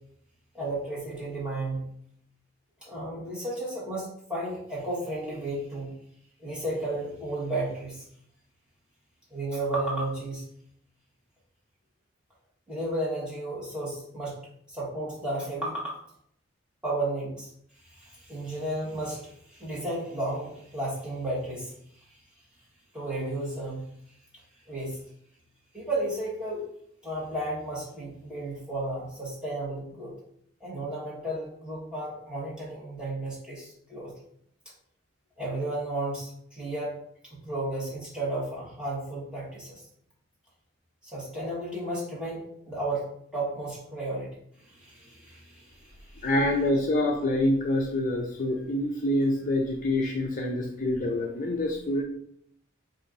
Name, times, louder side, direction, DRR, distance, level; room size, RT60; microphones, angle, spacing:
voice 1, 0.5-1.8 2.8-5.9 6.4-8.0 9.3-10.4 12.7-14.4 14.7-16.0 16.8-17.5 17.9-21.7 22.9-23.8 24.7-25.0 25.7-26.6 27.0-30.1 30.6-34.1 35.4-36.9 37.3-39.8 41.0-43.0 43.3-44.4 44.7-46.2, right 1 dB, 5° right, -8 dB, 1.4 m, -33 dB
voice 2, 46.2-52.0, left 1 dB, 40° left, 0 dB, 0.4 m, -26 dB
4.2 x 2.6 x 3.8 m, 0.68 s
head